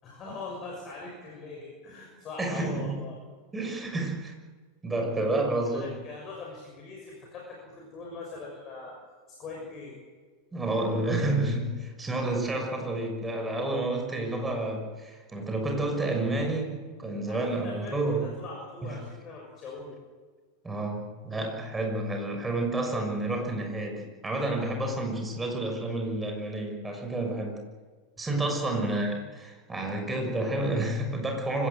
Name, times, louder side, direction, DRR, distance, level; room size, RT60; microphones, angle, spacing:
voice 1, 0.0-3.2 5.1-9.0 9.3-10.0 17.3-20.0 28.6-28.8, left 3 dB, 30° left, 0 dB, 6.2 m, -42 dB
voice 2, 2.4-3.0 3.5-4.3 4.8-5.9 10.5-18.3 18.8-18.9 20.6-27.6 28.2-31.7, right 2 dB, 10° right, 3 dB, 6.3 m, -30 dB
25.0 x 17.5 x 8.0 m, 1.4 s
figure-of-eight pair, 90°, 0 cm